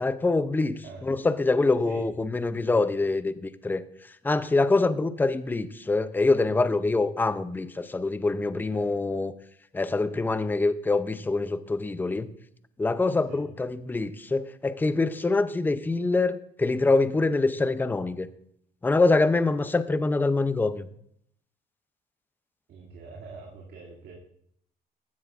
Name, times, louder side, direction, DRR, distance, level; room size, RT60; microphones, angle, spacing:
voice 1, 0.0-3.8 4.2-9.3 9.7-12.3 12.8-18.3 18.8-20.9, left 3 dB, 10° left, 13 dB, 0.5 m, -25 dB
voice 2, 8.5-9.0 13.3-13.5 22.7-24.1, right 4 dB, 65° right, -4 dB, 2.4 m, -44 dB
14.5 x 10.0 x 2.5 m, 0.70 s
cardioid pair, 110°, 17 cm